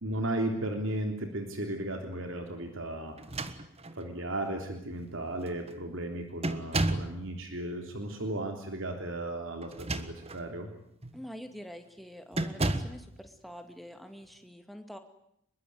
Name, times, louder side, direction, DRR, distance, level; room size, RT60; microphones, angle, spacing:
voice 1, 0.0-3.2 3.9-10.7, right 1 dB, 60° right, 4 dB, 3.5 m, -35 dB
sound 1, 3.2-4.1 4.9-5.0 5.4-5.8 6.4-7.2 9.6-10.5 11.0-11.2 12.3-13.0, right 2 dB, 25° right, 1.5 m, -32 dB
voice 2, 11.1-15.0, equal, ahead, 6 dB, 2.3 m, -46 dB
25.5 x 22.5 x 9.6 m, 0.75 s
head